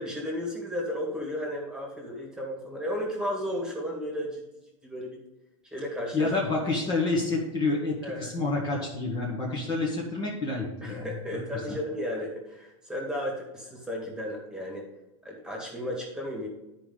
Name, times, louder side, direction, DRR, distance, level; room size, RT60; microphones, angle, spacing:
voice 1, 0.0-4.4 4.8-5.1 5.7-6.3 8.0-8.3 10.8-14.8 15.2-16.5, equal, 5° right, -2 dB, 2.0 m, -34 dB
voice 2, 6.1-11.8, left 3 dB, 25° left, -2 dB, 1.5 m, -29 dB
11.5 x 5.0 x 3.9 m, 0.97 s
supercardioid pair, 150°, 17 cm